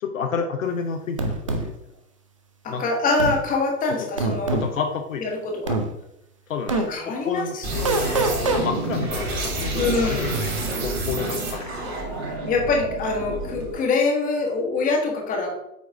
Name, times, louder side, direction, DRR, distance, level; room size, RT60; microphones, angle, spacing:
voice 1, 0.0-1.7 2.7-2.8 3.9-4.1 4.5-5.2 6.5-6.8 7.0-7.6 8.4-11.7 13.3-13.4, left 6 dB, 55° left, 4 dB, 0.8 m, -30 dB
sound 1, 1.2-1.7 3.2-3.4 4.2-4.7 5.7-5.9 6.7-6.9 7.8-8.6, right 2 dB, 25° right, 0.3 m, -23 dB
voice 2, 2.6-4.6 5.2-5.8 6.7-8.3 9.8-10.3 12.4-15.6, left 3 dB, 15° left, 1 dB, 1.3 m, -25 dB
sound 2, 7.6-13.8, right 2 dB, 40° right, 2.8 m, -28 dB
8.4 x 4.5 x 3.5 m, 0.79 s
figure-of-eight pair, 105°, 47 cm